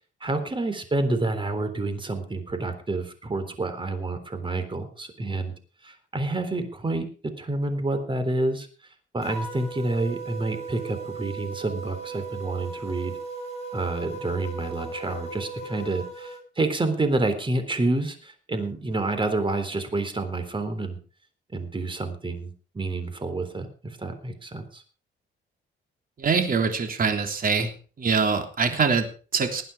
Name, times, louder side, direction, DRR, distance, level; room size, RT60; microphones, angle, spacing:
voice 1, 0.2-5.5 5.8-8.7 9.1-13.1 13.7-21.0 21.5-24.8, right 2 dB, 25° right, 9 dB, 3.7 m, -28 dB
sound 1, 9.2-16.4, right 3 dB, 30° left, 7.8 m, -37 dB
voice 2, 26.2-27.7 28.0-29.6, right 5 dB, 45° right, 5 dB, 3.5 m, -24 dB
20.0 x 9.2 x 4.9 m, 0.38 s
cardioid pair, 90°, 20 cm